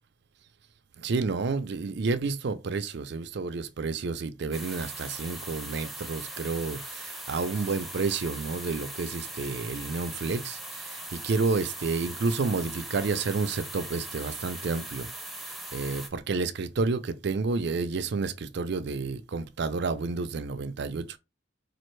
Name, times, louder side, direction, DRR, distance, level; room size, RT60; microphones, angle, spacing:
voice 1, 1.0-15.1 15.4-21.2, right 4 dB, 65° right, 0.5 m, -30 dB
sound 1, 4.5-16.1, right 1 dB, ahead, 0.6 m, -40 dB
4.3 x 2.4 x 3.1 m
head